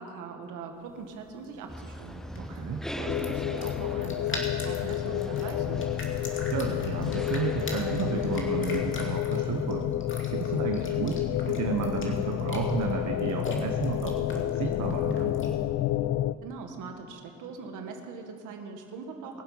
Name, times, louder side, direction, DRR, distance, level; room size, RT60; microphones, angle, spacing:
voice 1, 0.0-2.2 2.9-5.9 16.4-19.4, right 5 dB, 90° right, 4 dB, 1.5 m, -41 dB
sound 1, 0.8-15.7, left 2 dB, 40° left, 2.4 m, -43 dB
sound 2, 1.7-9.2, equal, ahead, 0.5 m, -40 dB
voice 2, 2.4-2.8 6.5-9.9 10.3-15.4, right 6 dB, 70° right, 3 dB, 1.2 m, -32 dB
sound 3, 3.1-16.3, left 13 dB, 65° left, 0.4 m, -30 dB
22.0 x 7.5 x 5.6 m, 2.6 s
cardioid pair, 90°, 30 cm